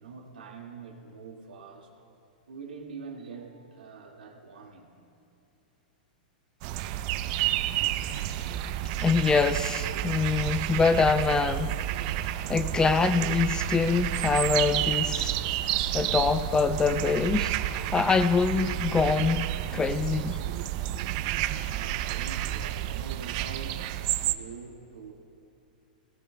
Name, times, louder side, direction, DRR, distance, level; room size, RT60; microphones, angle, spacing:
voice 1, 0.0-1.9 2.5-4.9 21.6-25.1, right 5 dB, 85° right, 2.0 m, -44 dB
sound 1, 6.6-24.3, right 13 dB, 50° right, 0.5 m, -30 dB
voice 2, 9.0-11.7 12.5-15.4 15.9-20.4, left 5 dB, 15° left, 0.4 m, -25 dB
20.5 x 18.0 x 2.3 m
hypercardioid pair, 120°, 5 cm